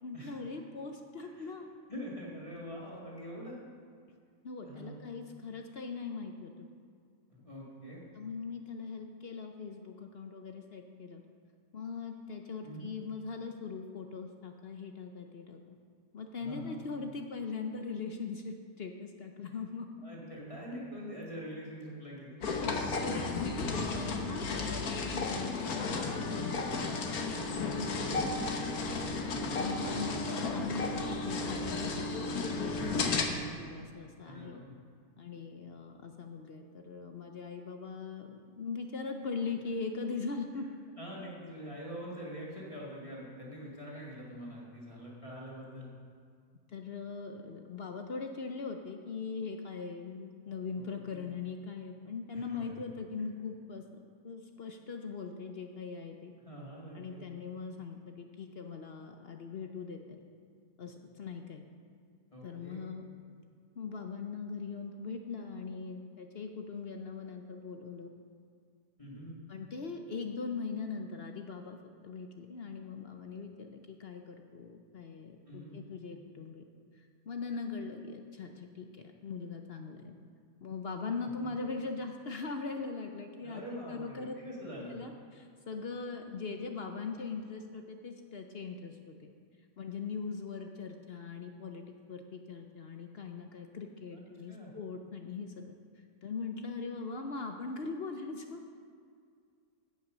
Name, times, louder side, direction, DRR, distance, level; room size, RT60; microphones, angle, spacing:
voice 1, 0.0-1.7 4.4-6.7 8.1-11.2 11.7-15.6 16.1-19.9 22.6-26.6 27.5-28.1 29.3-34.6 35.2-40.7 46.7-53.8 54.2-56.3 56.9-60.2 60.8-61.6 62.4-63.0 63.8-68.1 69.5-71.8 72.0-76.6 77.0-78.9 79.2-80.1 80.6-83.6 83.9-84.4 84.8-89.3 89.8-91.8 92.1-95.7 96.2-98.6, left 4 dB, 55° left, 4 dB, 0.7 m, -41 dB
voice 2, 1.2-1.5 1.9-3.6 4.6-5.0 7.3-8.0 12.6-12.9 16.4-16.8 20.0-22.3 23.3-23.8 28.0-28.3 29.3-30.2 34.2-34.6 40.5-40.6 41.0-45.9 50.7-51.3 52.3-52.8 56.4-57.2 62.3-62.8 69.0-69.4 75.5-75.8 81.4-81.5 83.4-84.9 94.1-94.2 94.5-94.7, equal, 20° left, -5 dB, 2.1 m, -44 dB
sound 1, 22.4-33.2, left 3 dB, 70° left, 1.5 m, -33 dB
15.5 x 5.7 x 6.2 m, 2.2 s
omnidirectional pair, 1.7 m